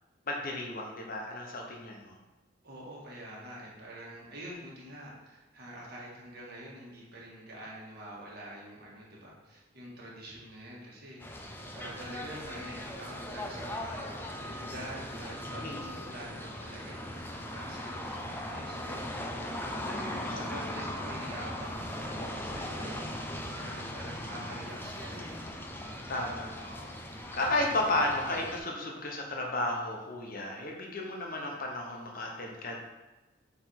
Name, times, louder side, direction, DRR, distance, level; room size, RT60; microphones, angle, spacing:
voice 1, 0.3-2.2 15.6-15.9 20.2-20.3 20.6-20.7 23.7-23.9 26.1-27.0 27.3-32.8, left 2 dB, 45° left, 0 dB, 1.0 m, -33 dB
voice 2, 2.6-14.1 14.5-25.4 26.1-26.4, right 1 dB, 55° right, -4 dB, 1.8 m, -46 dB
sound 1, 11.2-28.6, left 1 dB, 10° left, 0.6 m, -39 dB
7.9 x 3.4 x 4.6 m, 1.1 s
head